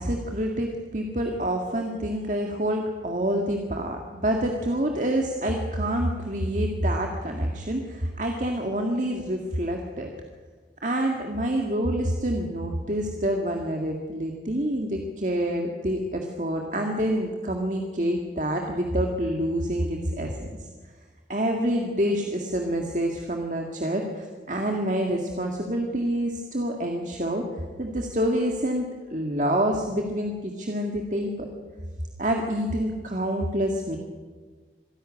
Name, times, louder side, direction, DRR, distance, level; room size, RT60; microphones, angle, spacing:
voice 1, 0.0-10.1 10.8-20.7 21.3-27.4 27.8-31.5 32.2-34.0, equal, 45° right, 2 dB, 1.9 m, -27 dB
26.0 x 11.5 x 9.8 m, 1.4 s
head